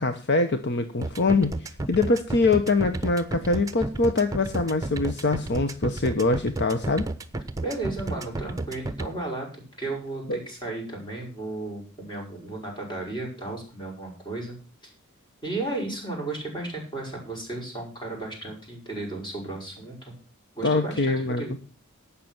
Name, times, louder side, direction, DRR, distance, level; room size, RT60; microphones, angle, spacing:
voice 1, 0.0-7.1 10.3-10.4 20.6-21.6, left 3 dB, 55° left, 8 dB, 1.0 m, -24 dB
sound 1, 1.0-9.1, right 2 dB, 15° right, 1.0 m, -31 dB
voice 2, 7.6-14.6 14.8-14.9 15.4-20.1 20.6-21.6, right 2 dB, 20° left, 1 dB, 5.8 m, -34 dB
12.0 x 8.5 x 6.0 m, 0.37 s
head